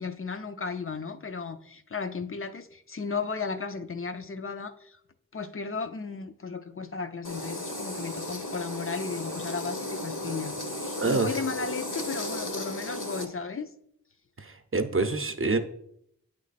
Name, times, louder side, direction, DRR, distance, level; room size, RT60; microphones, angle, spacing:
voice 1, 0.0-5.0 5.3-13.7, left 4 dB, 40° left, 10 dB, 0.5 m, -35 dB
sound 1, 7.2-13.3, left 1 dB, 65° left, 1.0 m, -35 dB
voice 2, 11.0-11.3 14.4-15.6, right 3 dB, 40° right, 6 dB, 0.6 m, -26 dB
9.0 x 3.1 x 4.1 m, 0.73 s
wide cardioid pair, 40°, 34 cm